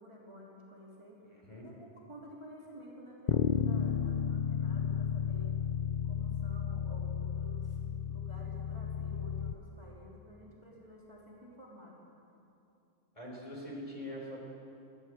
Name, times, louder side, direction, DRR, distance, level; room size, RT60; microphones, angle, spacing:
voice 1, 0.0-1.2 1.6-5.5 6.0-7.8 8.1-12.0, equal, 20° right, -5 dB, 3.4 m, -52 dB
voice 2, 1.3-1.7 13.1-14.4, left 1 dB, 25° left, -2 dB, 4.3 m, -43 dB
Bass guitar, 3.3-9.5, left 8 dB, 50° left, 0.6 m, -33 dB
21.0 x 16.5 x 7.8 m, 2.7 s
omnidirectional pair, 1.3 m